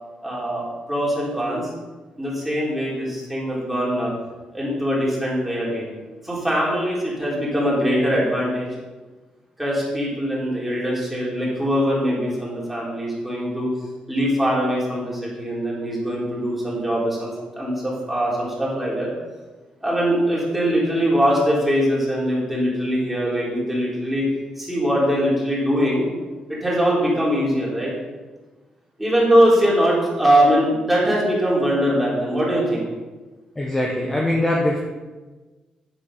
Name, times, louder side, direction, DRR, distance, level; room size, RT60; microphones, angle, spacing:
voice 1, 0.2-1.7 2.2-4.1 4.5-5.9 6.2-8.7 9.6-13.7 14.1-17.3 17.5-19.1 19.8-24.3 24.6-26.0 26.6-27.9 29.0-32.9, equal, 5° right, -6 dB, 3.6 m, -22 dB
voice 2, 33.5-34.8, left 1 dB, 10° left, -2 dB, 1.1 m, -22 dB
9.0 x 7.8 x 5.5 m, 1.2 s
cardioid pair, 150°, 2 cm